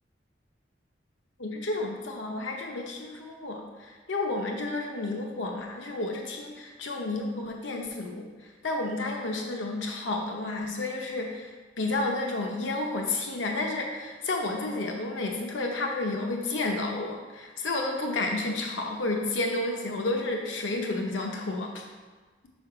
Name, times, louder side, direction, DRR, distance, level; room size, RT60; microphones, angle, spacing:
voice 1, 1.4-11.5 11.8-21.9, left 2 dB, 80° left, 1 dB, 0.7 m, -31 dB
5.4 x 5.3 x 4.7 m, 1.4 s
head